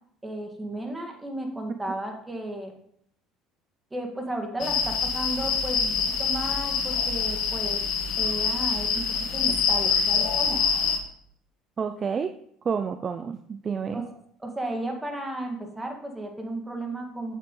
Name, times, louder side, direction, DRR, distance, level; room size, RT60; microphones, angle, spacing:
voice 1, 0.2-2.7 3.9-5.9 6.2-7.8 8.2-9.0 9.3-10.6 13.9-14.1 14.4-17.3, right 1 dB, 15° right, 3 dB, 1.9 m, -34 dB
sound 1, 4.6-11.0, left 6 dB, 70° left, 1.3 m, -25 dB
voice 2, 11.8-12.3 12.6-14.0, right 6 dB, 35° right, 8 dB, 0.5 m, -29 dB
8.8 x 6.6 x 3.8 m, 0.67 s
supercardioid pair, 90°, 0 cm